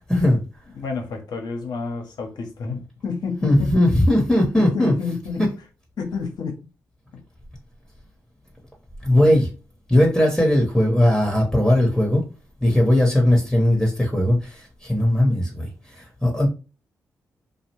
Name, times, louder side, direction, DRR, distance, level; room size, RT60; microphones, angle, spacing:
voice 1, 0.1-0.4 3.4-4.9 9.0-9.5 9.9-12.2 12.6-16.5, left 1 dB, 5° left, 1.0 m, -18 dB
voice 2, 0.7-3.8 4.6-5.5 6.0-6.6 7.1-7.2 9.2-9.5, left 5 dB, 65° left, 0.7 m, -30 dB
2.4 x 2.0 x 2.9 m
hypercardioid pair, 40°, 8 cm